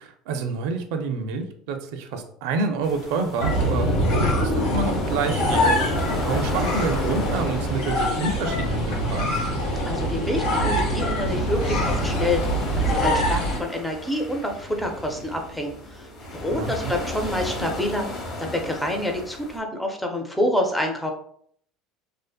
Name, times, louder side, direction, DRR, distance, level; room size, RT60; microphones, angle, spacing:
voice 1, 0.0-5.7 6.2-9.3 16.5-16.9, right 4 dB, 75° right, 6 dB, 0.4 m, -28 dB
sound 1, 2.8-19.6, left 1 dB, 30° left, 0.7 m, -35 dB
swing squeak, 3.4-13.6, equal, 75° left, 0.9 m, -24 dB
voice 2, 9.9-12.4 12.8-18.1 18.4-21.1, left 1 dB, 5° left, 3 dB, 0.4 m, -27 dB
2.5 x 2.4 x 2.2 m, 0.63 s
cardioid pair, 150°, 0 cm